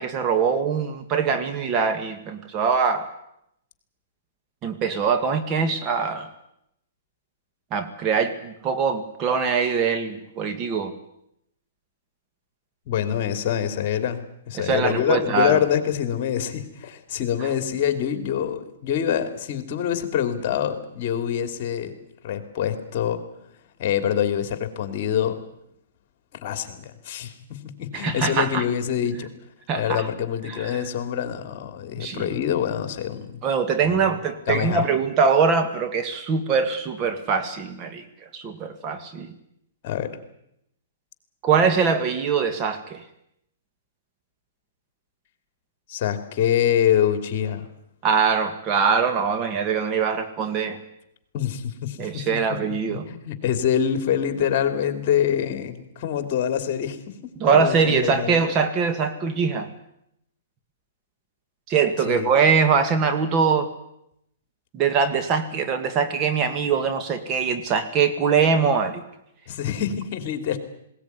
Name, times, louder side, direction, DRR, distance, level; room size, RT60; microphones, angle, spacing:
voice 1, 0.0-3.1 4.6-6.3 7.7-10.9 14.6-15.6 17.4-17.5 27.9-28.6 29.7-30.1 30.5-30.9 32.0-32.3 33.4-39.3 41.4-43.0 48.0-50.8 52.0-53.1 57.4-59.7 61.7-63.7 64.7-69.0, right 5 dB, 30° right, 8 dB, 1.8 m, -23 dB
voice 2, 12.9-14.2 14.5-21.9 22.2-23.2 23.8-25.4 26.4-29.3 29.8-33.4 33.9-34.1 34.5-34.8 39.8-40.1 45.9-47.7 51.3-52.6 52.9-57.0 57.2-58.4 62.0-62.3 69.5-70.6, left 9 dB, 45° left, 9 dB, 3.0 m, -25 dB
20.0 x 18.0 x 9.5 m, 0.77 s
hypercardioid pair, 145°, 0 cm